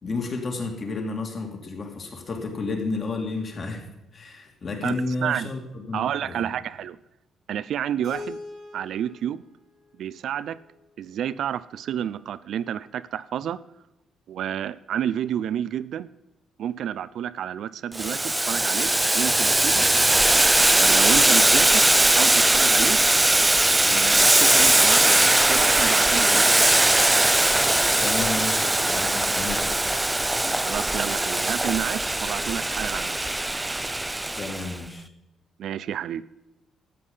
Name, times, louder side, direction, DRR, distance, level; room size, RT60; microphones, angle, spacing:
voice 1, 0.0-3.9 4.1-6.6 28.0-29.7 34.3-35.1, left 3 dB, 45° left, 2 dB, 2.8 m, -31 dB
voice 2, 4.8-5.5 5.9-7.0 7.5-8.4 8.7-9.4 10.0-10.6 11.0-13.6 14.3-16.1 16.6-19.9 20.7-23.0 23.8-26.7 30.6-33.2 35.6-36.2, right 10 dB, 70° right, 17 dB, 0.5 m, -30 dB
Keyboard (musical), 8.0-11.0, left 3 dB, 80° left, 4.7 m, -42 dB
Boiling, 17.9-34.7, right 1 dB, 10° right, 0.3 m, -20 dB
13.0 x 8.4 x 5.6 m, 0.92 s
cardioid pair, 90°, 0 cm